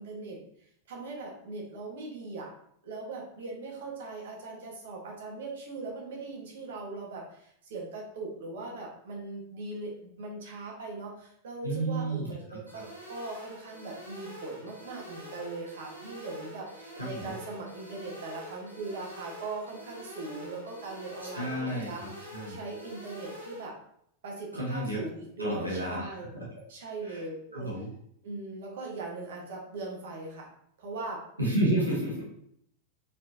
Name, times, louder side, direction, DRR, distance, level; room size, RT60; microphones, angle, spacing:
voice 1, 0.0-2.5 2.8-23.7 24.2-26.3 26.7-27.7 28.2-30.5 30.8-31.2, right 3 dB, 60° right, -2 dB, 1.3 m, -40 dB
voice 2, 11.6-12.2 12.5-12.8 17.0-17.4 21.3-22.6 24.5-25.0 25.4-26.6 27.0-27.2 27.5-27.9 31.4-32.2, right 1 dB, 85° right, -4 dB, 1.3 m, -31 dB
sound 1, 12.7-23.7, equal, 85° left, 1.3 m, -46 dB
4.2 x 4.1 x 2.7 m, 0.71 s
figure-of-eight pair, 90°, 0 cm